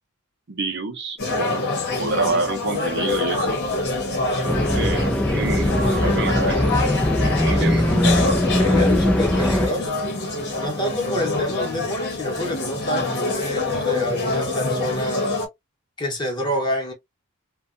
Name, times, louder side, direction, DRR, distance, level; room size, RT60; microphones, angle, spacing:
voice 1, 0.5-1.6 2.0-3.6 4.5-6.9 7.2-8.0, right 3 dB, 55° right, 0.6 m, -28 dB
sound 1, 1.2-15.5, left 2 dB, 50° left, 0.9 m, -25 dB
sound 2, 4.5-9.7, left 1 dB, 5° left, 0.3 m, -20 dB
voice 2, 7.5-10.0 10.6-15.4 16.0-16.9, equal, 20° left, 0.9 m, -28 dB
2.6 x 2.2 x 2.5 m
head